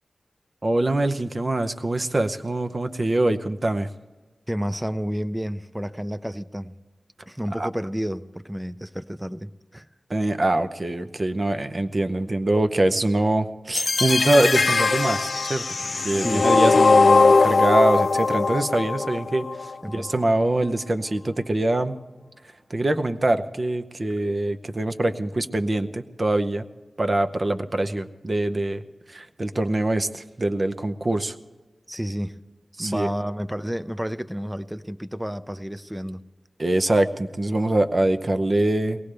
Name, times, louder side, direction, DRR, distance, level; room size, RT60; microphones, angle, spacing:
voice 1, 0.6-3.9 7.6-7.7 10.1-15.6 16.0-22.0 22.7-26.6 27.0-28.8 29.1-31.3 32.8-33.1 36.6-39.0, right 1 dB, 35° right, 9 dB, 0.7 m, -24 dB
voice 2, 4.5-6.8 7.3-9.9 16.1-16.5 19.8-20.1 31.9-32.4 32.8-36.2, equal, 10° right, 11 dB, 0.5 m, -30 dB
sound 1, 13.7-19.8, left 3 dB, 60° left, 0.5 m, -20 dB
22.0 x 18.5 x 3.4 m, 1.2 s
wide cardioid pair, 100°, 0 cm